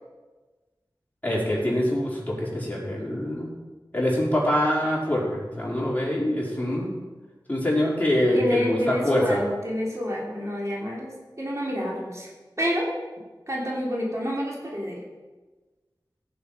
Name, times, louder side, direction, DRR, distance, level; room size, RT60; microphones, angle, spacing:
voice 1, 1.2-3.5 3.9-6.9 7.5-9.4, left 1 dB, 20° left, -5 dB, 4.6 m, -24 dB
voice 2, 8.3-12.3 12.6-12.9 13.5-15.0, equal, 40° right, -4 dB, 3.1 m, -28 dB
17.0 x 6.9 x 5.2 m, 1.3 s
wide cardioid pair, 45°, 8 cm